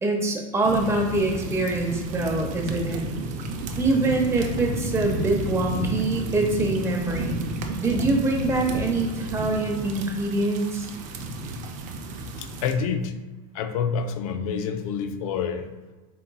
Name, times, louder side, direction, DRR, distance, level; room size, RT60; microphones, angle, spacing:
voice 1, 0.0-3.0 3.8-7.4 7.8-10.9, right 2 dB, 15° right, 0 dB, 0.8 m, -24 dB
sound 1, 0.6-12.7, right 2 dB, 45° right, 0.6 m, -32 dB
voice 2, 12.4-13.1 13.5-15.7, left 6 dB, 70° left, 8 dB, 0.4 m, -27 dB
3.9 x 3.7 x 2.3 m, 1.2 s
supercardioid pair, 110°, 19 cm